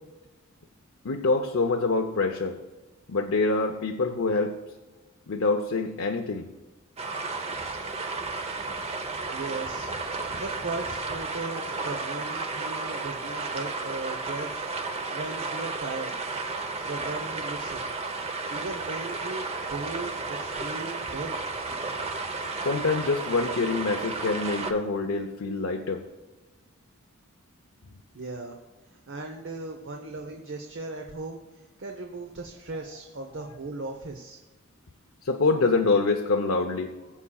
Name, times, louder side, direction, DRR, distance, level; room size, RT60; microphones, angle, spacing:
voice 1, 1.0-2.6 3.1-4.6 5.3-6.5 22.6-26.0 35.2-36.9, left 3 dB, 70° left, 3 dB, 0.7 m, -25 dB
sound 1, 7.0-24.7, right 3 dB, 30° right, 0.8 m, -33 dB
voice 2, 9.3-9.9 10.4-14.6 15.1-16.1 16.8-17.9 18.5-21.4 28.1-28.6 29.1-34.4, right 3 dB, 60° right, 3 dB, 0.9 m, -37 dB
21.5 x 7.3 x 2.3 m, 1.2 s
head